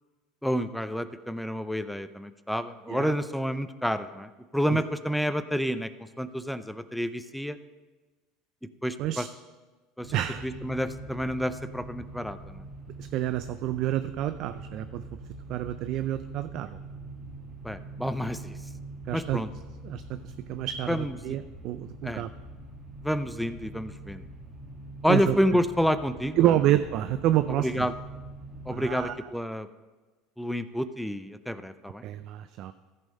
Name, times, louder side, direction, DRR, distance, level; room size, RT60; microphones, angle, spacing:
voice 1, 0.4-5.9 6.2-7.6 8.8-9.3 10.0-10.2 10.4-12.6 17.6-18.6 19.1-19.5 20.9-21.4 22.0-22.2 23.0-24.2 25.0-26.5 27.6-27.9 28.7-29.7 30.4-32.0, equal, ahead, 11 dB, 0.5 m, -29 dB
sound 1, 10.0-29.0, right 2 dB, 35° right, 2.6 m, -43 dB
voice 2, 10.1-10.5 13.0-15.0 15.5-16.8 19.1-19.4 19.8-22.3 25.1-25.4 26.4-27.9 28.7-29.3 32.0-32.7, right 13 dB, 55° right, 12 dB, 0.4 m, -28 dB
14.5 x 5.5 x 5.3 m, 1.3 s
supercardioid pair, 105°, 0 cm